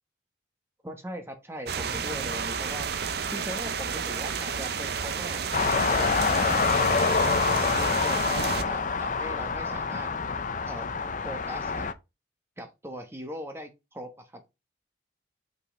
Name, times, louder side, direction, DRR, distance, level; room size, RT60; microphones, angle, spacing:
voice 1, 0.8-2.9 3.3-5.4 5.9-10.1 10.6-10.9 11.2-11.9 12.6-14.4, equal, 15° right, 1.1 m, -40 dB
sound 1, 1.7-8.6, right 6 dB, 55° right, 0.6 m, -31 dB
sound 2, 5.5-11.9, left 4 dB, 40° left, 0.6 m, -26 dB
5.4 x 5.2 x 3.8 m
head